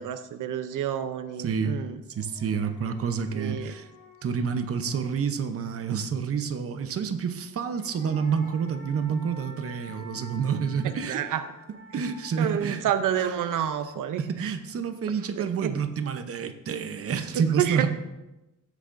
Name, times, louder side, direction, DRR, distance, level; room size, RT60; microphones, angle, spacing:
voice 1, 0.0-2.0 3.3-3.7 10.8-11.4 12.4-14.6 15.4-15.7 17.6-17.9, right 10 dB, 90° right, 10 dB, 0.7 m, -29 dB
voice 2, 1.4-1.8 2.1-3.9 4.2-11.2 11.9-12.9 13.2-13.4 14.2-17.9, right 6 dB, 50° right, 8 dB, 0.8 m, -28 dB
sound 1, 1.7-1.8 2.1-5.8 7.4-14.7, equal, 30° left, 1.8 m, -50 dB
15.5 x 8.3 x 2.6 m, 0.97 s
wide cardioid pair, 150°, 31 cm